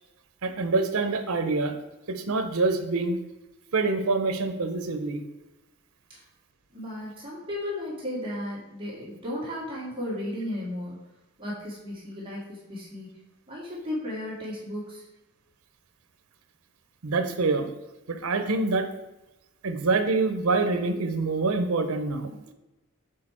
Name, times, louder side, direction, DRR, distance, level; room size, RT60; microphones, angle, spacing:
voice 1, 0.4-1.7 2.1-3.2 3.7-5.2 17.0-17.7 18.1-18.9 19.6-22.4, right 3 dB, 80° right, 8 dB, 0.8 m, -26 dB
voice 2, 6.7-11.0 11.4-13.2 13.5-15.0, left 1 dB, 25° right, -6 dB, 1.8 m, -35 dB
6.6 x 4.3 x 4.4 m, 1.0 s
head